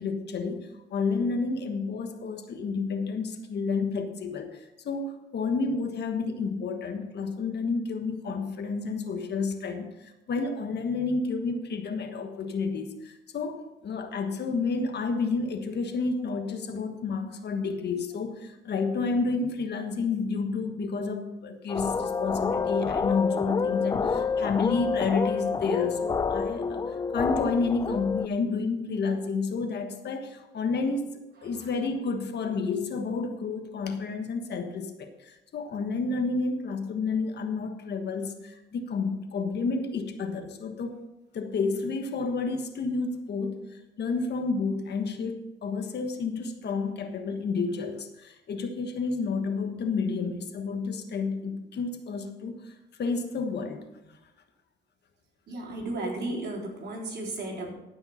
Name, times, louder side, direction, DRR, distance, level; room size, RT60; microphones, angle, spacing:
voice 1, 0.0-31.1 31.4-41.0 41.3-53.8, left 4 dB, 60° left, 6 dB, 1.4 m, -30 dB
sound 1, 21.7-28.3, left 5 dB, 20° left, 0.3 m, -28 dB
voice 2, 55.5-57.7, right 2 dB, 55° right, -2 dB, 3.8 m, -34 dB
14.0 x 5.7 x 5.6 m, 0.96 s
cardioid pair, 90°, 20 cm